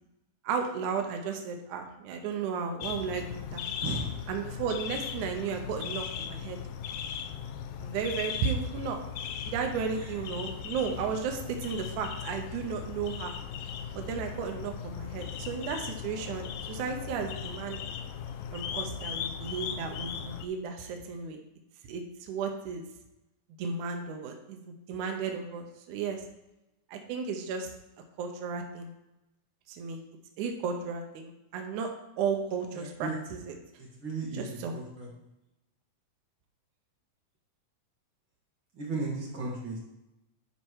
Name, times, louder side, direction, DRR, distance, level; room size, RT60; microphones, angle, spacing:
voice 1, 0.4-3.6 4.3-6.6 7.8-9.0 9.5-13.3 14.0-17.8 18.5-21.4 21.9-22.8 23.6-24.6 24.9-26.2 26.9-27.7 28.2-28.9 29.7-30.0 30.4-31.9 32.2-33.5 34.3-34.8, right 6 dB, 75° right, 3 dB, 2.3 m, -34 dB
sound 1, 2.8-20.5, left 8 dB, 75° left, 1.8 m, -38 dB
voice 2, 32.7-33.2 33.8-35.1 38.8-39.8, right 3 dB, 45° right, -3 dB, 2.3 m, -35 dB
11.5 x 4.4 x 4.7 m, 0.93 s
omnidirectional pair, 3.7 m